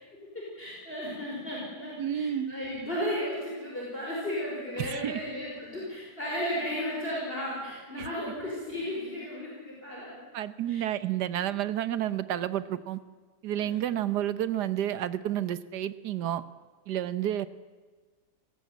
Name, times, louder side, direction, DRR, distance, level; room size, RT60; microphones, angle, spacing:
voice 1, 0.3-10.2 10.7-10.9 11.4-11.6 13.6-14.0, equal, 30° left, -4 dB, 5.3 m, -35 dB
voice 2, 2.0-2.5 4.8-5.2 8.0-8.3 10.3-13.0 13.4-16.4 16.9-17.5, right 11 dB, 75° right, 14 dB, 1.5 m, -30 dB
28.0 x 17.0 x 8.2 m, 1.4 s
omnidirectional pair, 1.8 m